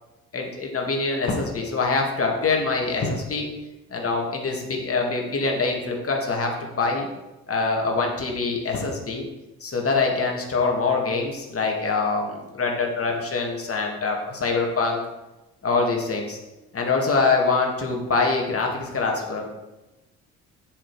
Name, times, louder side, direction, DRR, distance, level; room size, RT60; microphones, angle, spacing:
voice 1, 0.3-3.5 3.9-7.1 7.5-9.3 9.6-15.0 15.6-16.4 16.7-19.6, left 4 dB, 30° left, 0 dB, 2.1 m, -24 dB
7.3 x 6.7 x 4.9 m, 1.0 s
figure-of-eight pair, 50°, 44 cm